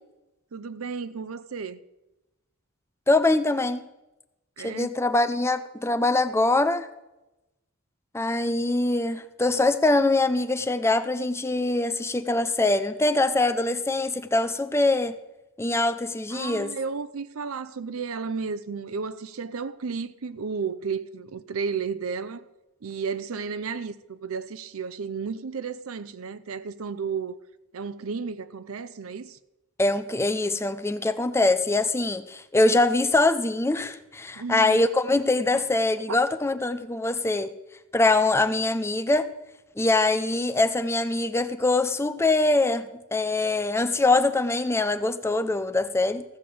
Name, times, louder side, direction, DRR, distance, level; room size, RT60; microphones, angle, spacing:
voice 1, 0.5-1.8 4.6-5.0 16.3-22.4 22.8-27.4 27.7-29.4 34.4-34.8 35.5-35.6 36.1-36.2, right 5 dB, 90° right, 0.6 m, -33 dB
voice 2, 3.1-3.8 4.6-6.9 8.1-15.2 15.6-16.7 29.8-37.5 37.9-39.3 39.8-46.2, left 2 dB, 10° left, 0.5 m, -23 dB
15.0 x 5.1 x 7.7 m
head